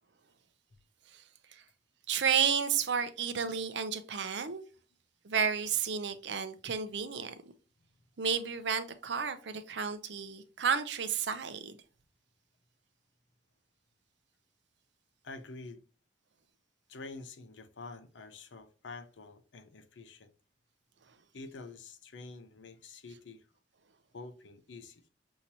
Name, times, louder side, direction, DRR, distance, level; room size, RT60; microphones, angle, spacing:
voice 1, 2.1-4.6 5.2-7.3 8.2-11.8, right 7 dB, 75° right, 0.6 m, -32 dB
voice 2, 15.2-15.8 16.9-20.3 21.3-23.5 24.1-25.0, left 3 dB, 90° left, 0.7 m, -47 dB
6.3 x 2.9 x 2.8 m
head